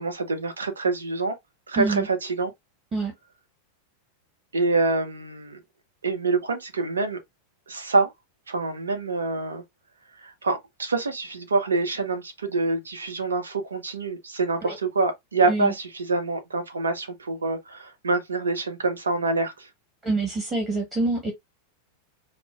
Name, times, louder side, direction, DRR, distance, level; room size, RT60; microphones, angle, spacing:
voice 1, 0.0-1.3 1.7-2.5 4.5-5.6 6.0-7.2 7.7-8.1 8.5-9.6 10.2-19.7, right 3 dB, 70° right, 0.9 m, -26 dB
voice 2, 1.7-2.1 2.9-3.1 14.6-14.8 15.5-15.7 20.0-21.3, right 3 dB, 25° right, 1.5 m, -26 dB
4.6 x 2.2 x 2.5 m
figure-of-eight pair, 90°, 0 cm